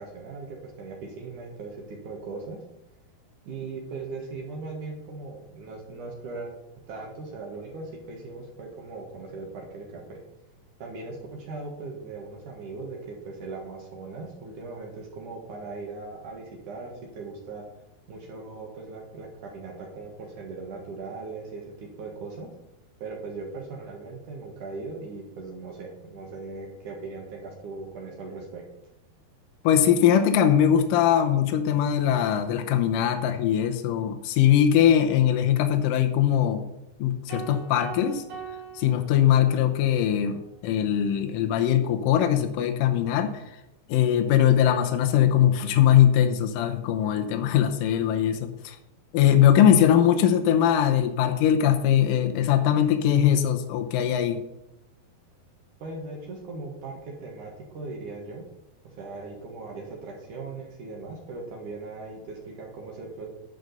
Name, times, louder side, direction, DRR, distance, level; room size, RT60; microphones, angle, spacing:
voice 1, 0.0-2.6 3.5-6.5 6.9-10.2 10.8-17.6 18.1-22.5 23.0-28.6 55.8-58.5 58.8-63.3, right 3 dB, 60° right, -1 dB, 2.6 m, -39 dB
voice 2, 29.6-36.6 37.0-38.2 38.7-43.4 43.9-48.8 49.1-54.4, left 10 dB, 80° left, 6 dB, 1.9 m, -21 dB
sound 1, 37.3-39.8, right 6 dB, 85° right, 4.6 m, -41 dB
11.0 x 4.8 x 6.6 m, 0.88 s
omnidirectional pair, 4.7 m